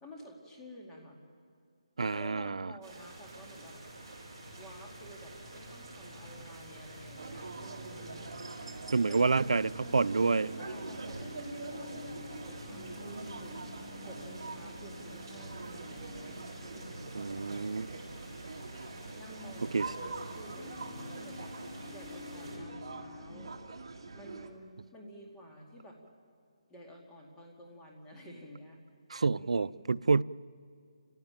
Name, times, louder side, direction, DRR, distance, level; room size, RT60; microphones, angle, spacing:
voice 1, 0.0-1.2 2.1-3.8 4.5-8.3 9.1-13.7 14.0-17.3 19.1-21.5 21.9-23.5 24.1-26.0 26.7-28.8 29.3-29.7, equal, 5° left, 2.2 m, -51 dB
voice 2, 2.0-2.7 8.9-10.6 17.1-17.9 19.7-19.9 29.1-30.2, right 4 dB, 80° right, 0.5 m, -28 dB
sound 1, 2.8-22.6, right 1 dB, 20° right, 7.1 m, -48 dB
sound 2, 7.2-24.5, right 3 dB, 50° right, 2.5 m, -45 dB
sound 3, 10.2-23.5, left 4 dB, 30° left, 6.2 m, -51 dB
29.5 x 16.5 x 8.9 m
hypercardioid pair, 175°, 3 cm